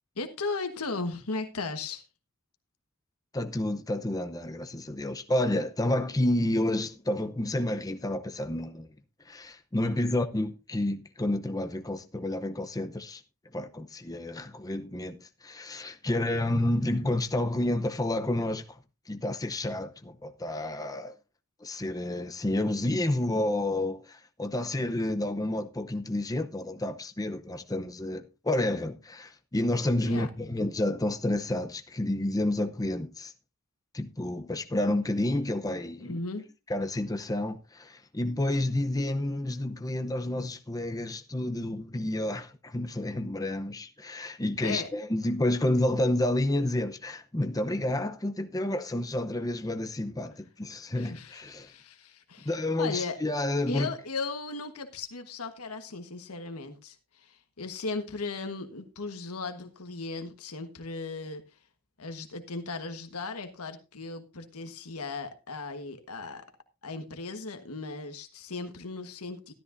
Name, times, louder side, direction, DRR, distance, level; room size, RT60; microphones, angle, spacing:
voice 1, 0.2-2.0 30.1-30.3 36.0-36.4 44.6-44.9 50.9-52.5 52.8-53.2 53.7-61.4 62.0-66.4 66.8-69.5, left 3 dB, 90° left, 1.4 m, -37 dB
voice 2, 3.3-8.9 9.2-13.2 13.5-18.8 19.1-21.1 21.6-33.3 33.9-36.2 36.7-51.7 52.4-53.9, left 1 dB, 15° left, 0.7 m, -30 dB
13.0 x 13.0 x 2.6 m
head